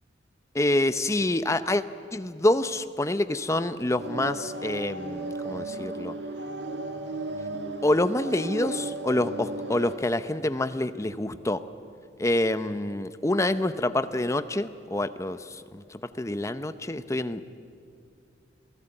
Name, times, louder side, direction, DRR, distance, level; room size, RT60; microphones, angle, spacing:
voice 1, 0.5-1.8 2.1-6.1 7.8-11.6 12.2-17.4, left 1 dB, 15° left, 12 dB, 0.8 m, -27 dB
sound 1, 4.0-10.0, right 2 dB, 75° right, 1.7 m, -35 dB
29.0 x 17.5 x 9.0 m, 2.5 s
head